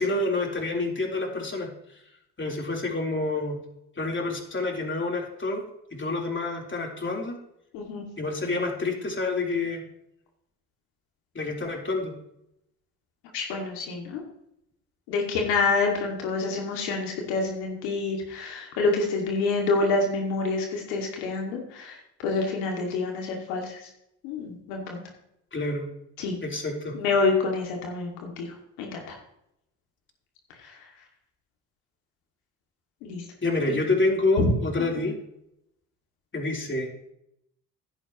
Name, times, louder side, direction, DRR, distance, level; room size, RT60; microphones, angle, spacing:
voice 1, 0.0-1.7 2.4-3.6 4.0-7.4 8.2-9.8 11.3-12.2 25.5-25.9 26.4-27.0 33.4-35.1 36.3-37.1, left 2 dB, 30° left, 0 dB, 3.8 m, -28 dB
voice 2, 7.7-8.1 13.3-14.2 15.1-22.0 22.2-23.8 24.2-25.0 26.2-26.4 26.9-29.2 33.0-33.2 34.4-34.5, left 3 dB, 90° left, 1 dB, 2.3 m, -27 dB
15.0 x 11.0 x 3.1 m, 0.78 s
supercardioid pair, 60°, 37 cm